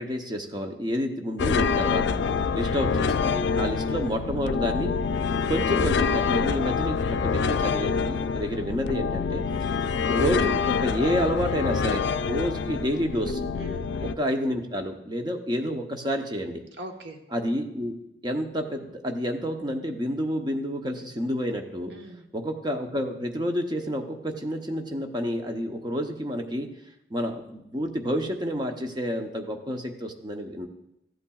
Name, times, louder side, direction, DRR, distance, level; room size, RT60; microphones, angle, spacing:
voice 1, 0.0-2.2 2.5-5.0 5.5-9.4 10.1-13.4 14.0-16.6 17.3-18.0 18.2-21.9 22.3-26.7 27.1-30.7, equal, 25° right, 4 dB, 0.7 m, -29 dB
sound 1, 1.4-14.1, left 5 dB, 75° left, 0.4 m, -26 dB
voice 2, 2.2-2.6 5.4-5.5 9.5-9.7 13.6-13.9 16.8-17.2 21.9-22.2, right 1 dB, 75° right, 3 dB, 1.1 m, -42 dB
14.0 x 8.5 x 2.3 m, 0.85 s
head